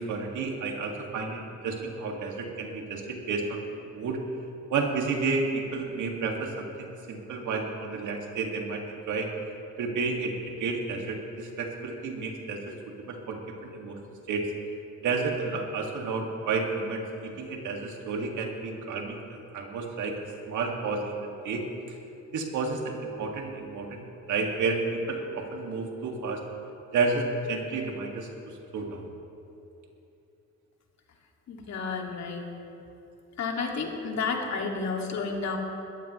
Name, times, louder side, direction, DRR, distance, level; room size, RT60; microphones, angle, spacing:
voice 1, 0.0-3.6 3.9-4.2 4.7-9.3 9.8-12.7 13.0-14.0 14.3-14.5 15.0-20.1 20.5-21.6 22.3-26.4 26.9-28.3 28.7-29.1, right 4 dB, 75° right, 1 dB, 2.2 m, -31 dB
voice 2, 31.5-32.5 33.4-35.6, left 4 dB, 60° left, 1 dB, 2.3 m, -31 dB
21.5 x 15.0 x 3.2 m, 2.8 s
cardioid pair, 90°, 30 cm